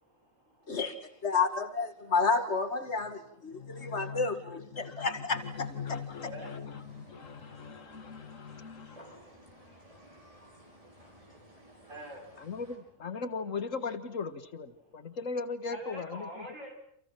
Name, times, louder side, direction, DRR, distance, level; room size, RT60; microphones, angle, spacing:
voice 1, 1.2-6.0, left 4 dB, 60° left, 8 dB, 2.3 m, -31 dB
voice 2, 3.5-9.7 12.4-16.5, left 5 dB, 75° left, 10 dB, 2.0 m, -39 dB
sound 1, 5.3-12.8, equal, 25° right, 6.3 m, -55 dB
voice 3, 11.9-12.2 15.7-16.7, equal, 75° right, 2 dB, 6.8 m, -43 dB
29.5 x 28.0 x 6.0 m, 0.66 s
omnidirectional pair, 1.3 m